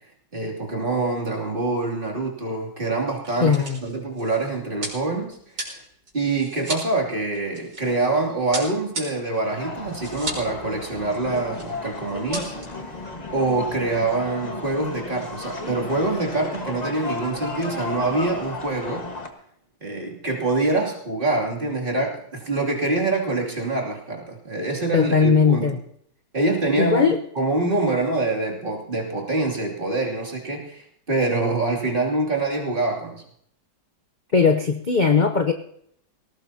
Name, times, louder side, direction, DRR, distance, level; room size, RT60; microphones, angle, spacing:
voice 1, 0.3-5.8 6.1-12.5 12.9-13.0 13.3-19.1 19.8-25.8 26.3-33.2, right 2 dB, 30° right, -2 dB, 2.9 m, -25 dB
sound 1, 1.5-1.8 2.0-2.1 2.9-8.1 8.5-10.5 10.8-10.9 11.1-11.7 12.0-12.6, right 2 dB, 75° right, 5.0 m, -35 dB
voice 2, 3.4-3.8 24.9-25.8 26.8-27.2 34.3-35.5, left 5 dB, 40° left, 5 dB, 0.7 m, -19 dB
sound 2, 9.4-19.3, left 3 dB, 25° left, 1.4 m, -34 dB
19.5 x 18.0 x 2.8 m, 0.68 s
omnidirectional pair, 1.9 m